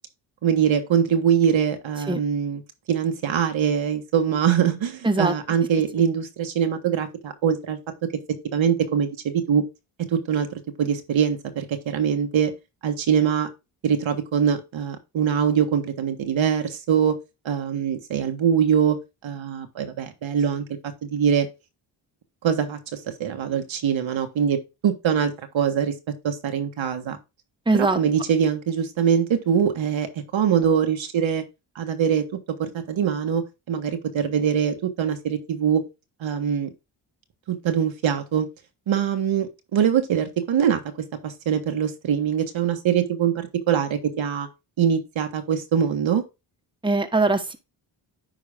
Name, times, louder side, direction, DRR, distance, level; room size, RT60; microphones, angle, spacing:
voice 1, 0.4-2.6 2.9-7.8 8.5-9.6 10.0-10.5 10.8-12.5 12.8-13.5 13.8-17.2 17.4-19.0 19.2-20.6 21.1-21.5 22.4-25.9 26.2-27.2 27.7-31.4 31.7-32.2 32.6-35.8 36.2-36.7 37.5-38.5 38.9-40.8 41.2-44.5 44.8-46.2, right 8 dB, 70° right, 1.6 m, -23 dB
voice 2, 27.7-28.0 46.8-47.6, right 2 dB, 10° right, 1.3 m, -21 dB
10.5 x 3.9 x 3.6 m
cardioid pair, 60°, 48 cm